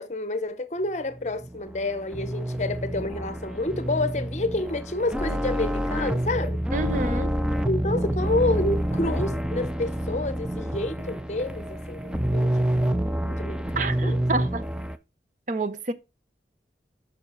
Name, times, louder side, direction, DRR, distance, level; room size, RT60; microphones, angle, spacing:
voice 1, 0.0-6.6 7.7-12.5 12.8-14.1, left 2 dB, 40° left, 0.8 m, -29 dB
sound 1, 1.1-15.0, right 1 dB, 5° right, 0.4 m, -28 dB
voice 2, 6.7-7.3 13.8-14.6 15.5-15.9, right 2 dB, 45° right, 0.7 m, -28 dB
7.0 x 6.1 x 4.7 m
head